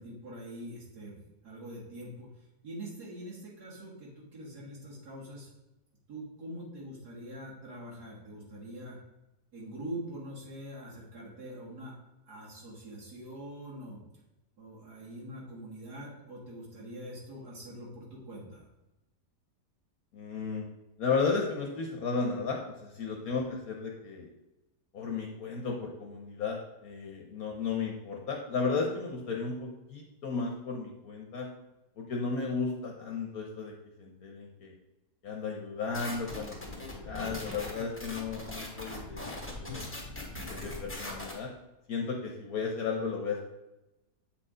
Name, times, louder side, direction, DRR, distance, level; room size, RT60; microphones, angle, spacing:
voice 1, 0.0-5.5 6.1-9.0 9.5-12.0 12.3-14.0 14.6-18.7, right 1 dB, 65° right, -7 dB, 2.2 m, -44 dB
voice 2, 20.1-20.6 21.0-24.3 24.9-31.5 32.0-33.7 34.0-34.7 35.2-39.2 39.6-39.9 40.5-41.5 41.9-43.4, left 4 dB, 60° left, 1 dB, 1.3 m, -34 dB
sound 1, 35.9-41.3, left 1 dB, 10° left, 1.2 m, -40 dB
8.0 x 4.5 x 4.9 m, 0.97 s
omnidirectional pair, 1.8 m